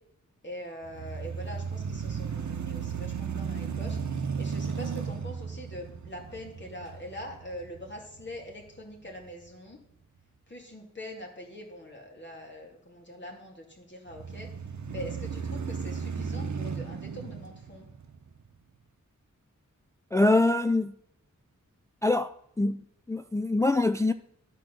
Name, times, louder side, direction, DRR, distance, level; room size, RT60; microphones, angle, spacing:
voice 1, 0.4-9.8 10.5-14.5 14.9-17.9, equal, 35° left, 2.4 m, -43 dB
sound 1, 0.8-9.0 9.5-9.6 14.1-18.6, right 6 dB, 65° right, 0.9 m, -35 dB
voice 2, 20.1-20.9 22.0-22.3 22.6-22.8 23.1-24.1, left 2 dB, 10° left, 0.3 m, -24 dB
10.5 x 4.6 x 6.3 m
wide cardioid pair, 65°, 31 cm